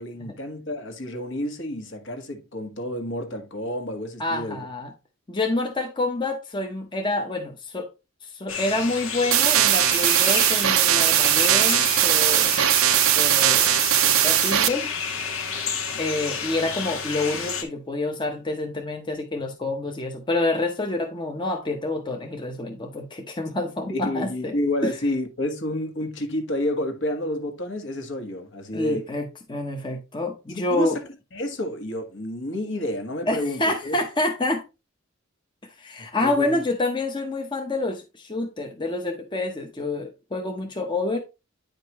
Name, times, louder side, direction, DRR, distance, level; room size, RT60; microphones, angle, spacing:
voice 1, 0.0-4.7 23.9-29.1 30.5-30.9 31.3-34.0 36.2-36.6, left 1 dB, 60° left, 1.5 m, -30 dB
voice 2, 4.2-4.9 5.3-7.9 8.2-12.6 13.1-14.9 16.0-24.6 24.8-24.9 28.7-31.0 33.3-34.6 35.8-41.2, left 2 dB, 20° left, 0.8 m, -27 dB
sound 1, 8.5-17.6, left 6 dB, 75° left, 1.5 m, -30 dB
sound 2, 9.3-14.7, right 13 dB, 80° right, 0.6 m, -19 dB
9.4 x 5.2 x 3.0 m
head